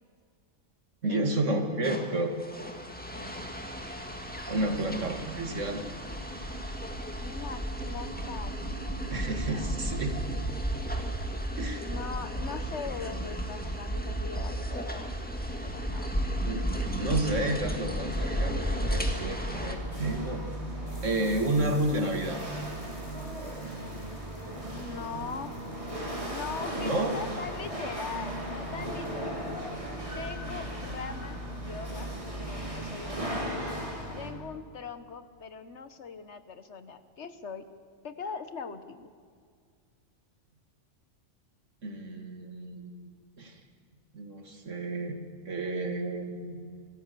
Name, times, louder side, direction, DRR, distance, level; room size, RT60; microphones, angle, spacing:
voice 1, 1.0-2.3 4.5-5.8 9.1-10.4 11.6-11.9 16.4-18.6 18.9-20.4 21.0-22.4 26.8-27.1 41.8-43.0 43.4-43.6 44.1-45.2 45.5-46.6, right 2 dB, 80° right, 4 dB, 2.5 m, -31 dB
sound 1, 1.8-19.7, equal, 5° left, 1.9 m, -33 dB
voice 2, 3.1-3.5 7.2-9.1 9.5-9.7 11.8-15.2 15.6-16.1 24.7-25.5 26.2-29.5 30.1-32.1 32.4-33.6 34.1-37.7 38.0-39.1, left 5 dB, 65° left, 10 dB, 1.4 m, -41 dB
Chatter / Hiss / Rattle, 17.6-34.3, right 1 dB, 25° right, 3.4 m, -37 dB
sound 2, 20.9-28.8, right 1 dB, 50° right, 6.3 m, -55 dB
25.0 x 15.5 x 6.9 m, 2.1 s
omnidirectional pair, 1.3 m